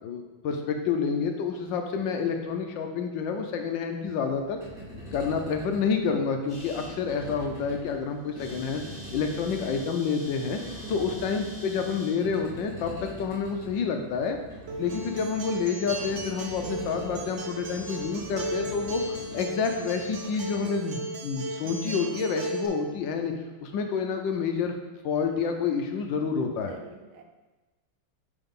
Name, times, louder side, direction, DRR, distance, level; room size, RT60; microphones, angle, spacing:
voice 1, 0.0-4.6 5.1-8.8 9.1-10.6 10.9-14.4 14.8-19.0 19.3-23.3 23.6-24.7 25.0-26.7, left 5 dB, 70° left, 5 dB, 1.3 m, -28 dB
sound 1, 4.4-20.6, left 1 dB, 25° right, 2.3 m, -44 dB
sound 2, 6.5-6.9 7.5-7.7 7.9-8.0 8.2-12.2, equal, 30° left, 2.0 m, -46 dB
voice 2, 10.6-11.0 26.7-27.2, right 4 dB, 80° right, 3 dB, 1.6 m, -46 dB
Acoustic guitar, 14.7-22.7, right 2 dB, 60° right, 0.8 m, -35 dB
9.1 x 3.9 x 3.6 m, 1.2 s
omnidirectional pair, 2.3 m